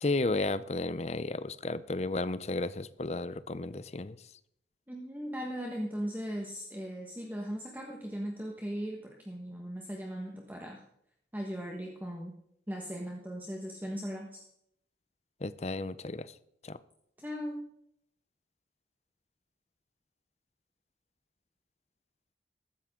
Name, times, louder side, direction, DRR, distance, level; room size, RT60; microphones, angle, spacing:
voice 1, 0.0-4.2 15.4-16.3 16.6-16.8, left 2 dB, 35° left, 15 dB, 0.6 m, -33 dB
voice 2, 4.9-10.8 11.3-12.4 12.7-14.4 17.2-17.6, equal, 10° right, 0 dB, 1.4 m, -38 dB
15.0 x 13.0 x 3.7 m, 0.73 s
head